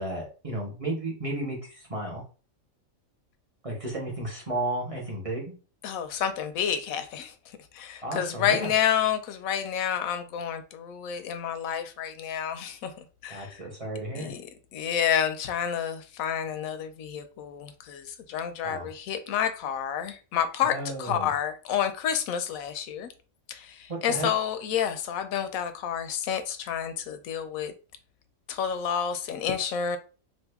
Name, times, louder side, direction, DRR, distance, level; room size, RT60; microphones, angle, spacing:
voice 1, 0.0-2.2 3.6-5.5 8.0-8.7 13.3-14.3 18.6-18.9 20.6-21.3 23.9-24.3, right 1 dB, 30° right, 0.9 m, -33 dB
voice 2, 5.8-7.3 7.7-12.9 13.2-13.6 14.1-14.4 14.7-23.1 23.5-27.7 28.5-30.0, left 8 dB, 85° left, 1.0 m, -29 dB
2.7 x 2.5 x 3.4 m
omnidirectional pair, 1.4 m